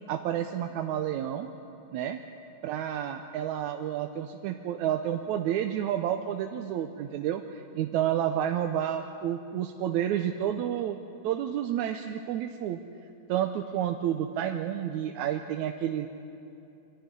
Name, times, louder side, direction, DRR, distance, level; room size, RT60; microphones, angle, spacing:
voice 1, 0.1-1.5 1.9-2.2 2.6-11.0 11.2-12.8 13.3-16.1, right 10 dB, 75° right, 5 dB, 2.0 m, -30 dB
24.0 x 15.0 x 9.8 m, 2.8 s
omnidirectional pair, 3.6 m